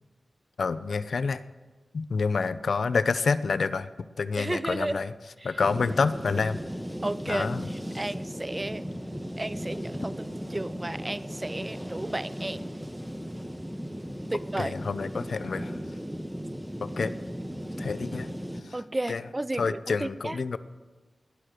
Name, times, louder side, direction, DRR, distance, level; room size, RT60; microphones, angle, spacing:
voice 1, 0.6-1.4 1.9-3.9 4.2-5.1 5.4-6.6 7.3-7.6 14.6-15.8 16.8-17.1 17.8-18.3 18.6-18.7 19.1-19.2 19.6-20.6, left 4 dB, 75° left, 14 dB, 0.6 m, -28 dB
voice 2, 4.4-5.0 5.4-5.6 7.0-8.8 9.4-12.7 14.3-14.7 18.7-20.4, right 1 dB, 25° right, 16 dB, 0.6 m, -33 dB
sound 1, 5.6-18.6, equal, 5° right, 1.3 m, -36 dB
19.5 x 6.7 x 9.2 m, 1.3 s
cardioid pair, 50°, 0 cm